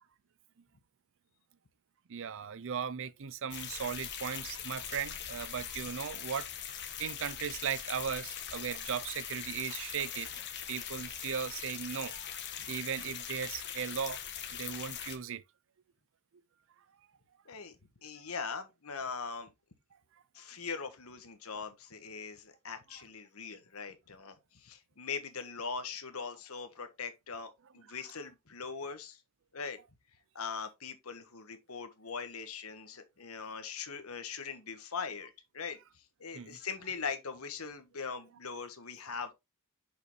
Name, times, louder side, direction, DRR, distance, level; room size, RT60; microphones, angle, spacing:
voice 1, 2.1-6.5 7.0-10.4 10.7-12.4 12.7-14.2 14.5-15.4 36.3-36.6, right 7 dB, 65° right, 0.5 m, -37 dB
sound 1, 3.5-15.2, left 9 dB, 55° left, 1.4 m, -41 dB
voice 2, 17.4-17.8 18.0-19.5 20.3-29.2 29.5-29.8 30.3-39.3, left 5 dB, 75° left, 1.3 m, -41 dB
6.7 x 5.3 x 3.1 m
head